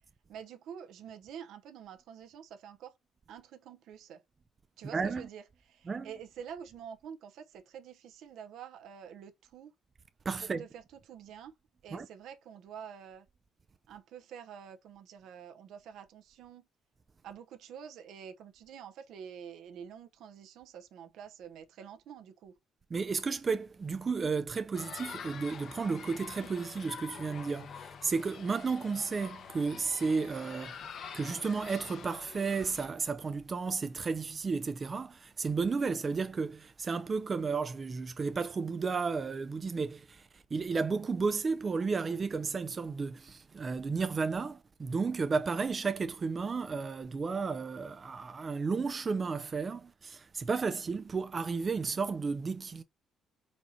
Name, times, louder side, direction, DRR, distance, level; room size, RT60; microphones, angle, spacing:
voice 1, 0.3-2.9 3.3-4.2 4.8-9.7 10.4-11.5 11.8-13.3 13.9-16.7 17.2-22.5, right 8 dB, 75° right, 0.8 m, -48 dB
voice 2, 4.9-5.3 5.9-6.1 10.3-10.6 11.9-12.1 22.9-30.8 31.1-52.8, right 4 dB, 30° right, 0.4 m, -33 dB
sound 1, 24.7-32.9, left 6 dB, 55° left, 0.9 m, -46 dB
4.3 x 4.2 x 2.7 m
cardioid pair, 105°, 0 cm